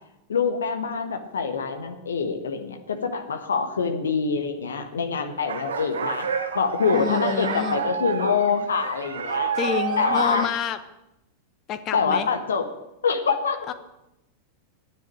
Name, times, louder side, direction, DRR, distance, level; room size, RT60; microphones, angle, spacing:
voice 1, 0.3-6.3 6.5-9.5 10.0-10.5 11.9-12.7 13.0-13.6, left 5 dB, 70° left, 6 dB, 1.5 m, -25 dB
sound 1, 5.5-10.5, right 6 dB, 70° right, 1.5 m, -29 dB
voice 2, 6.9-7.8 9.6-10.8 11.7-12.3 13.7-13.8, left 8 dB, 35° left, 11 dB, 1.2 m, -28 dB
10.5 x 9.3 x 9.0 m, 0.90 s
figure-of-eight pair, 90°, 0 cm